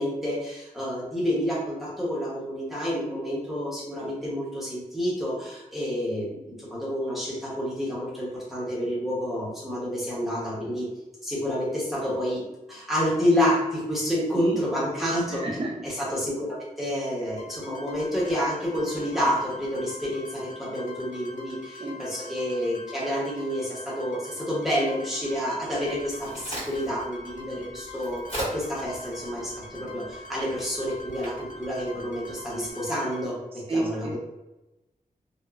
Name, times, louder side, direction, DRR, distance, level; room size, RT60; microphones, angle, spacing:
voice 1, 0.0-10.9 11.2-12.4 12.7-15.4 15.8-28.2 28.5-34.2, equal, ahead, -7 dB, 0.7 m, -29 dB
sound 1, 17.4-33.2, left 2 dB, 65° left, 0.5 m, -44 dB
Crack, 25.8-32.7, right 1 dB, 40° left, 1.5 m, -40 dB
voice 2, 33.7-34.2, right 2 dB, 40° right, -1 dB, 0.5 m, -29 dB
2.9 x 2.0 x 2.3 m, 0.97 s
wide cardioid pair, 175°, 14 cm